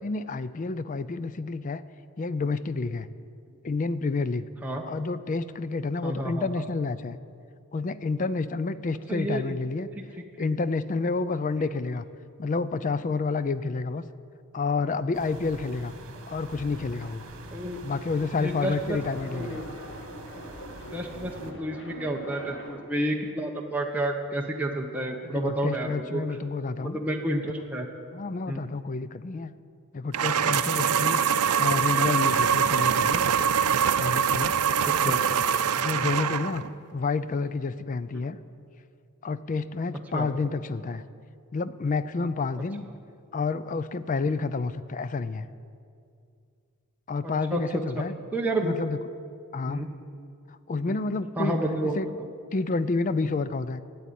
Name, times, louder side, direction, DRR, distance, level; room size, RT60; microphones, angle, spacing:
voice 1, 0.0-1.8 2.2-3.1 3.6-4.4 4.9-7.2 7.7-9.9 10.4-12.0 12.4-14.0 14.5-15.9 16.3-17.2 17.8-19.6 25.2-27.0 28.1-29.5 29.9-31.2 31.6-33.3 34.0-34.6 35.0-35.1 35.7-36.6 36.9-38.4 39.2-41.0 41.5-42.9 43.3-45.5 47.1-48.1 48.6-49.0 49.5-49.9 50.5-51.6 52.0-52.1 52.5-53.8, left 4 dB, 35° left, 15 dB, 0.4 m, -29 dB
voice 2, 6.0-6.6 9.1-9.6 17.5-17.8 18.4-19.0 19.2-19.6 20.9-26.4 26.8-27.9 28.5-28.6 30.5-30.6 35.0-35.2 36.0-36.2 40.1-40.3 44.3-44.4 47.5-47.6 48.3-48.8 49.7-49.9 50.9-51.0 51.4-52.0, right 1 dB, 5° right, 0 dB, 0.9 m, -30 dB
sound 1, 15.1-21.5, right 2 dB, 60° right, 1.6 m, -44 dB
sound 2, 18.5-23.0, equal, 55° left, 1.7 m, -44 dB
sound 3, 30.1-36.7, right 7 dB, 85° right, 0.5 m, -24 dB
12.5 x 8.5 x 9.3 m, 2.4 s
head